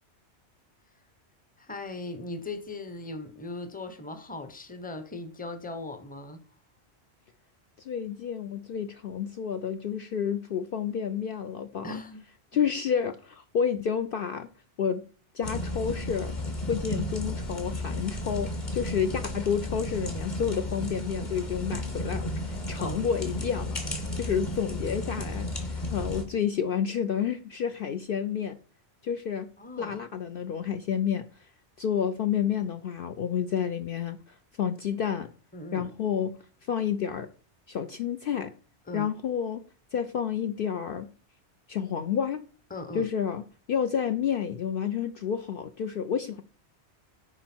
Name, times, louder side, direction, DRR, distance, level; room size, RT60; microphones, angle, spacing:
voice 1, 1.6-6.4 11.8-12.2 22.8-23.0 24.0-24.2 29.6-30.0 35.5-35.9 38.9-39.1 42.7-43.1, left 2 dB, 10° left, 0.7 m, -38 dB
voice 2, 7.8-12.0 12.5-14.5 14.8-15.0 15.3-16.4 16.7-28.6 29.0-29.5 29.8-31.5 31.8-35.3 35.7-36.4 36.6-37.3 37.7-38.5 38.9-39.7 39.9-41.1 41.7-42.4 42.9-43.4 43.7-46.4, left 7 dB, 60° left, 0.7 m, -30 dB
sound 1, 15.4-26.2, left 1 dB, 40° left, 1.7 m, -33 dB
9.9 x 4.8 x 4.4 m
omnidirectional pair, 1.2 m